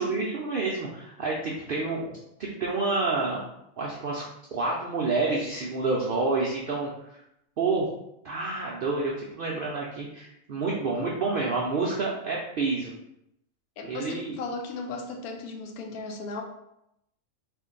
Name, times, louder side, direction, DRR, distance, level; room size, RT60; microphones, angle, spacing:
voice 1, 0.0-2.1 2.4-3.4 3.8-4.2 4.5-7.2 7.6-7.9 8.2-12.9 13.9-14.4, right 3 dB, 70° right, -3 dB, 0.5 m, -28 dB
voice 2, 13.8-16.4, left 3 dB, 85° left, 3 dB, 1.1 m, -36 dB
2.9 x 2.5 x 3.7 m, 0.80 s
omnidirectional pair, 1.5 m